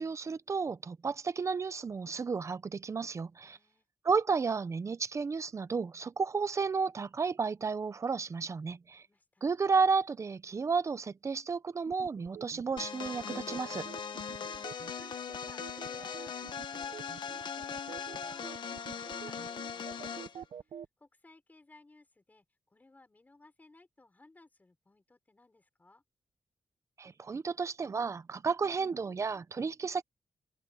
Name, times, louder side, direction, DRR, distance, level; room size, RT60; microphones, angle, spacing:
voice 1, 0.0-3.6 4.0-9.0 9.4-13.9 27.0-30.0, right 5 dB, 35° right, 0.8 m, -32 dB
voice 2, 3.4-3.9 8.9-9.5 14.1-26.0, left 2 dB, 20° left, 5.2 m, -60 dB
sound 1, 11.9-20.9, right 8 dB, 90° right, 0.8 m, -48 dB
sound 2, 12.8-20.4, left 6 dB, 60° left, 1.5 m, -40 dB
wide cardioid pair, 140°, 9 cm